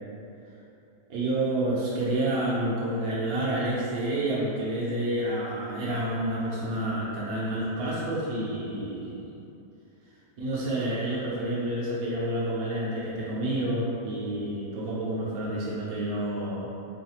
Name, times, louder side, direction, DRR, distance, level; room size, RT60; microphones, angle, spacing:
voice 1, 1.1-9.3 10.4-16.7, right 1 dB, 70° right, -8 dB, 1.0 m, -29 dB
3.6 x 3.1 x 2.8 m, 2.8 s
omnidirectional pair, 1.8 m